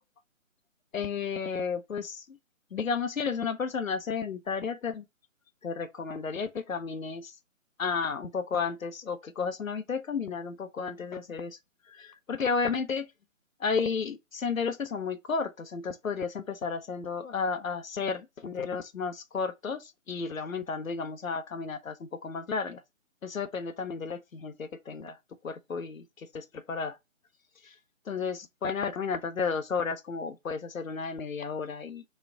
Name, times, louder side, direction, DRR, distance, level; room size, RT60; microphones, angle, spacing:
voice 1, 0.9-2.4 2.7-5.0 5.6-7.3 7.8-11.6 11.9-13.1 13.6-22.8 23.2-25.2 25.4-27.0 27.6-27.8 28.1-32.0, left 5 dB, 85° left, 0.7 m, -32 dB
4.1 x 2.3 x 3.7 m
figure-of-eight pair, 145°, 40 cm